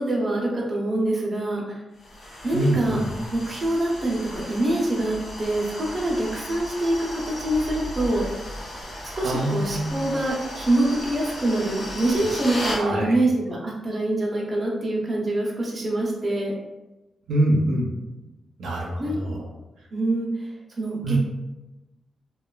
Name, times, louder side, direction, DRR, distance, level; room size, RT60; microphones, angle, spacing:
voice 1, 0.0-1.8 2.4-3.0 3.3-8.2 9.1-16.5 19.0-19.2 19.9-20.5 20.8-21.2, right 1 dB, 25° right, -3 dB, 0.6 m, -25 dB
sound 1, 2.0-12.8, left 1 dB, 55° left, 0.7 m, -35 dB
voice 2, 2.5-3.1 9.2-10.0 12.8-13.2 17.3-17.9 18.6-19.5 21.0-21.2, right 1 dB, 90° right, -2 dB, 0.5 m, -24 dB
3.0 x 2.2 x 2.2 m, 1.0 s
wide cardioid pair, 160°, 0 cm